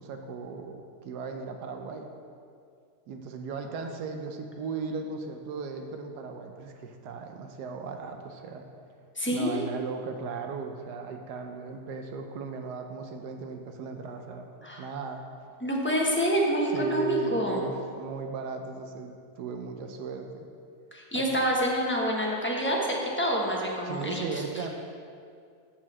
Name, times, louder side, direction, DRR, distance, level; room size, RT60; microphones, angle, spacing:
voice 1, 0.0-2.1 3.1-8.6 9.3-14.5 14.8-15.2 16.7-20.5 21.1-21.2 23.8-24.7, right 5 dB, 85° right, 4 dB, 1.3 m, -36 dB
voice 2, 9.1-9.6 14.6-14.8 15.6-17.6 20.9-24.4, equal, 10° left, -2 dB, 0.9 m, -27 dB
7.1 x 5.0 x 7.2 m, 2.3 s
omnidirectional pair, 1.7 m